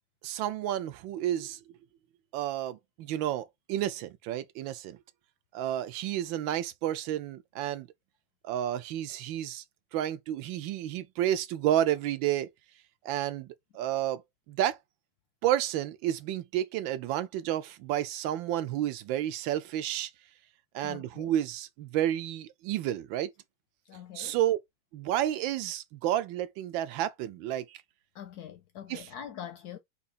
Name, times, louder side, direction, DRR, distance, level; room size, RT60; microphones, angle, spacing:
voice 1, 0.2-1.6 2.3-5.0 5.5-7.9 8.4-9.6 9.9-12.5 13.0-13.5 13.7-14.2 14.5-14.8 15.4-20.1 20.7-23.3 24.2-24.6 24.9-27.8 28.9-29.0, right 12 dB, 85° right, 1.4 m, -31 dB
voice 2, 20.8-21.3 23.9-24.4 28.1-29.8, left 9 dB, 70° left, 0.9 m, -44 dB
4.0 x 2.8 x 4.2 m
omnidirectional pair, 2.1 m